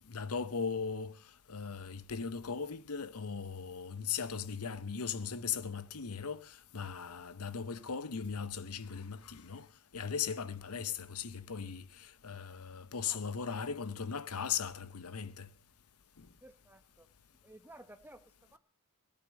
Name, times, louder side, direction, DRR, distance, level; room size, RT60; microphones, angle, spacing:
voice 1, 0.1-1.1 1.5-9.7 9.9-15.5 16.2-16.3, left 6 dB, 85° left, 0.9 m, -38 dB
voice 2, 13.0-13.6 16.4-17.1 17.4-18.2 18.5-18.6, right 1 dB, 10° right, 1.1 m, -55 dB
17.0 x 10.5 x 6.4 m
head